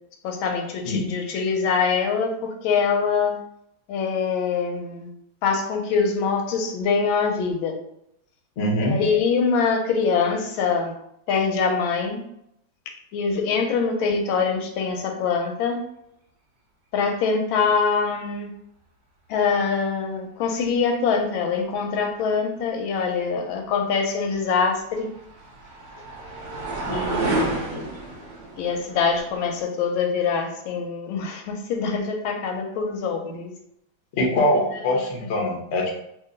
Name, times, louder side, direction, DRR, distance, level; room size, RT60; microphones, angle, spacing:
voice 1, 0.2-3.4 3.9-5.1 5.4-7.8 8.8-10.9 11.3-12.2 13.1-15.8 16.9-18.5 19.3-25.1 26.8-27.9 28.6-33.5 35.3-35.5, left 5 dB, 90° left, 4 dB, 1.4 m, -24 dB
voice 2, 8.6-9.0 34.2-36.0, left 1 dB, 60° left, -1 dB, 0.7 m, -23 dB
sound 1, 24.3-29.6, right 2 dB, 65° right, 0.6 m, -30 dB
2.8 x 2.8 x 3.8 m, 0.76 s
omnidirectional pair, 2.2 m